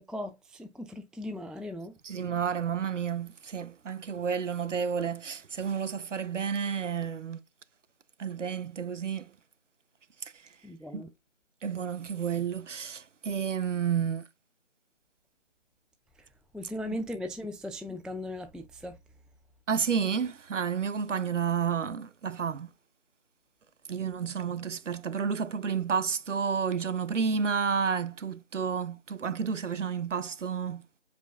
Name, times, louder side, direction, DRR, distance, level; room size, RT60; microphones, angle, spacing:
voice 1, 0.0-2.0 10.6-11.1 16.2-16.3 16.5-19.0, left 1 dB, ahead, 0.3 m, -38 dB
voice 2, 2.0-7.4 8.2-9.3 10.9-11.0 11.6-14.2 19.7-22.7 23.9-30.8, right 6 dB, 80° right, 0.6 m, -31 dB
5.0 x 4.3 x 2.4 m
figure-of-eight pair, 175°, 37 cm